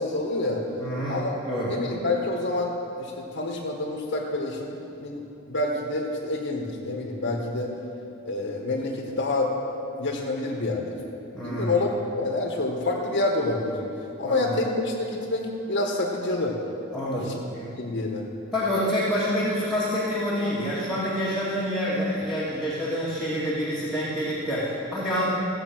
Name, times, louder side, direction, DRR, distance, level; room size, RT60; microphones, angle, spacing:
voice 1, 0.0-0.6 1.1-1.4 1.7-7.7 8.2-9.5 10.0-10.9 11.4-11.9 12.2-13.8 14.2-16.6 17.1-17.3 17.8-18.2, left 2 dB, 65° left, -2 dB, 1.5 m, -27 dB
voice 2, 0.8-1.2 1.5-1.7 11.3-11.9 14.2-14.5 16.9-17.6 18.5-25.2, equal, ahead, -10 dB, 2.1 m, -27 dB
15.5 x 7.8 x 6.1 m, 2.7 s
head